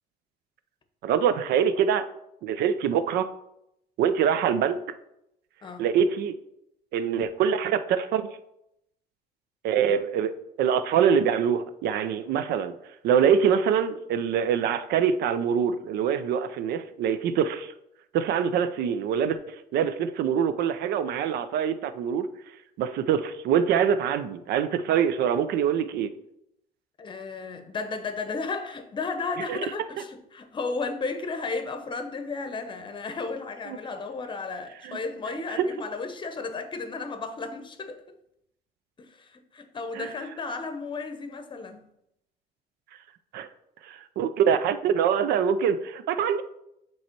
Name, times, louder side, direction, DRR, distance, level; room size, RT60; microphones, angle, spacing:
voice 1, 1.0-2.0 2.4-3.3 4.0-4.8 5.8-6.3 6.9-8.2 9.6-10.3 10.6-12.7 13.0-17.7 18.1-22.3 22.8-26.1 29.5-29.6 34.8-35.0 35.6-35.7 39.9-40.1 43.3-43.5 43.8-46.4, right 8 dB, 75° right, 0.6 m, -24 dB
voice 2, 27.0-38.0 39.0-41.9, left 4 dB, 30° left, 0.8 m, -34 dB
7.2 x 3.1 x 4.5 m
cardioid pair, 110°, 17 cm